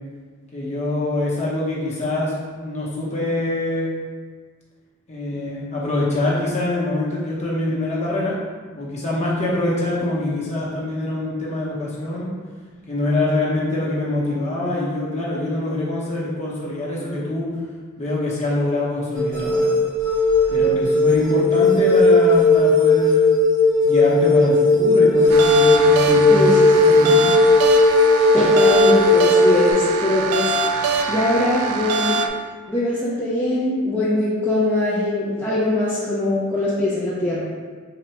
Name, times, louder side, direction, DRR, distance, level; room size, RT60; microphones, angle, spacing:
voice 1, 0.5-3.9 5.1-8.4 8.7-12.3 12.9-17.5 18.0-19.7 20.5-23.4 23.8-27.3, left 2 dB, 30° left, -6 dB, 0.9 m, -24 dB
sound 1, 19.1-29.7, left 2 dB, 40° right, 0.8 m, -16 dB
sound 2, 25.3-32.3, right 4 dB, 90° right, 0.4 m, -23 dB
voice 2, 26.3-26.7 28.3-30.5 31.1-32.3 32.7-37.4, left 2 dB, 10° left, -9 dB, 0.5 m, -21 dB
3.8 x 2.2 x 4.4 m, 1.5 s
head